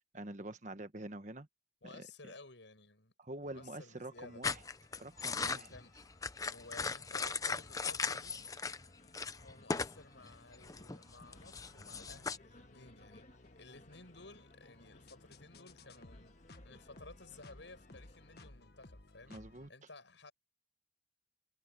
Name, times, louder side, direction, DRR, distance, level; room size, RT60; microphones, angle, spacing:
voice 1, 0.0-1.5 1.8-2.1 3.2-4.6 5.0-5.7 19.3-19.7, right 1 dB, 40° right, 1.3 m, -46 dB
voice 2, 1.8-3.1 3.5-4.4 5.5-6.0 6.4-8.4 9.4-13.3 13.6-16.4 16.6-19.4 19.7-20.3, left 3 dB, 75° left, 7.4 m, -55 dB
sound 1, 3.4-18.5, left 2 dB, 40° left, 1.6 m, -64 dB
sound 2, 4.4-8.9 9.1-10.0 10.3-12.4, left 4 dB, 20° left, 0.7 m, -38 dB
sound 3, 11.2-19.7, left 2 dB, 55° left, 1.5 m, -59 dB
head